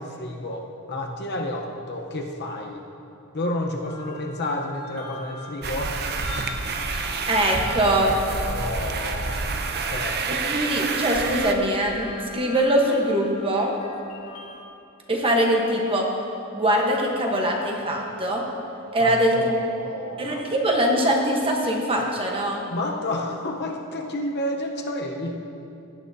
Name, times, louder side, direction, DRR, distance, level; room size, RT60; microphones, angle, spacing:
voice 1, 0.0-2.8 3.3-5.9 8.4-9.5 9.8-10.2 19.0-20.4 22.7-25.4, left 1 dB, 50° left, 1 dB, 0.9 m, -30 dB
sound 1, 3.9-14.6, left 3 dB, 80° left, 2.1 m, -42 dB
sound 2, 5.6-11.5, right 4 dB, 50° right, 0.6 m, -28 dB
voice 2, 6.9-8.2 10.4-12.1 12.3-13.8 15.1-16.1 16.5-18.4 18.9-19.5 20.2-22.6, right 1 dB, 25° right, 0 dB, 1.1 m, -22 dB
17.0 x 8.8 x 2.8 m, 2.7 s
head